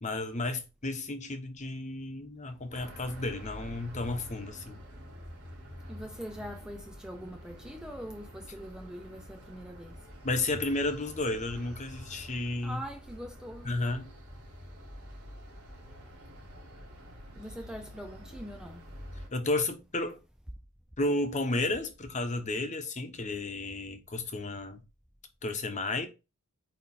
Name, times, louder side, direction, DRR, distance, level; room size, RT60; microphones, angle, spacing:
voice 1, 0.0-4.8 10.2-12.8 13.6-14.1 19.3-20.2 21.0-24.8 25.4-26.1, left 2 dB, 30° left, 1.0 m, -32 dB
sound 1, 2.7-19.3, equal, 70° right, 3.8 m, -47 dB
voice 2, 5.9-10.0 12.6-13.7 17.4-18.8, equal, 5° right, 0.4 m, -43 dB
8.6 x 3.1 x 4.2 m
head